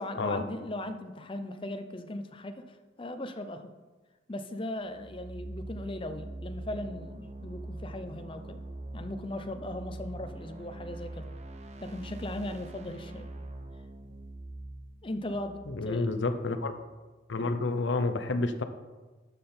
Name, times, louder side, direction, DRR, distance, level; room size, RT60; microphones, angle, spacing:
voice 1, 0.0-3.7 4.3-8.6 8.9-11.3 11.8-13.3 15.0-16.1, left 1 dB, 25° left, 8 dB, 0.6 m, -38 dB
sound 1, 4.9-16.6, right 1 dB, 35° right, 0.7 m, -43 dB
voice 2, 15.7-16.7 17.3-18.6, left 3 dB, 65° left, 8 dB, 0.7 m, -29 dB
12.0 x 5.7 x 4.4 m, 1.3 s
head